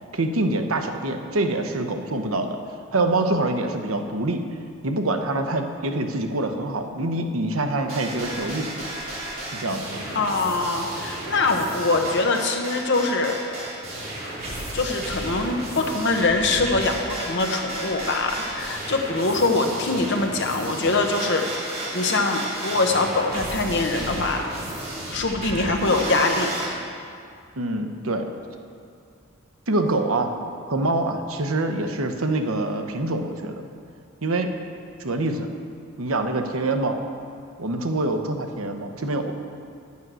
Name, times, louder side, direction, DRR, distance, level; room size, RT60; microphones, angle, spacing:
voice 1, 0.1-2.6 2.9-4.4 4.8-8.9 9.5-10.2 27.6-28.3 29.7-30.3 30.7-33.7 34.2-34.5 35.0-35.5 36.0-37.0 37.6-39.3, right 2 dB, 85° right, 5 dB, 0.9 m, -25 dB
sound 1, 7.9-26.7, right 1 dB, 45° right, 3.2 m, -33 dB
voice 2, 10.1-13.4 14.0-14.1 14.7-21.4 21.9-24.4 25.1-26.5, left 3 dB, 55° left, 3 dB, 1.0 m, -23 dB
9.2 x 8.5 x 6.2 m, 2.4 s
head